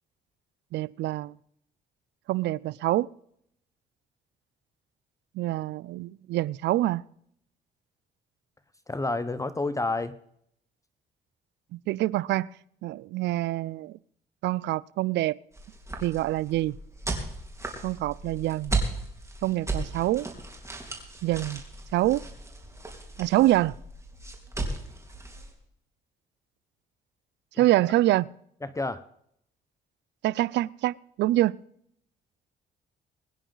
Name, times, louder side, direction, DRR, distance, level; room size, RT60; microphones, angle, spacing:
voice 1, 0.7-1.4 2.3-3.1 5.4-7.0 11.9-12.5 12.8-14.0 14.4-15.4 16.0-16.8 17.8-18.8 19.4-20.3 21.2-21.6 21.9-22.2 23.2-23.7 27.6-28.3 30.2-31.6, right 16 dB, 80° right, 0.4 m, -25 dB
voice 2, 8.9-10.1 27.6-27.7 28.6-29.0, left 2 dB, 20° left, 0.8 m, -29 dB
sound 1, 15.5-25.5, right 2 dB, 15° right, 3.7 m, -36 dB
22.0 x 10.0 x 3.9 m
cardioid pair, 85°, 18 cm